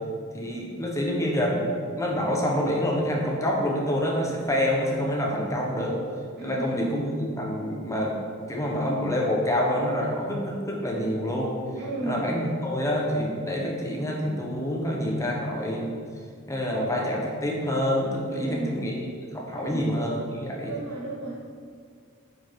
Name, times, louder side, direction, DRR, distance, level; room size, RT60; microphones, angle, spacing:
voice 1, 0.3-1.7 2.0-6.0 6.4-8.2 8.5-11.5 12.0-15.9 16.5-18.9 19.3-20.8, equal, 15° left, -2 dB, 1.2 m, -27 dB
voice 2, 6.4-7.1 11.8-12.3 18.3-18.8 19.6-19.9 20.6-21.3, right 2 dB, 50° right, -9 dB, 2.1 m, -33 dB
9.1 x 5.6 x 4.8 m, 2.1 s
head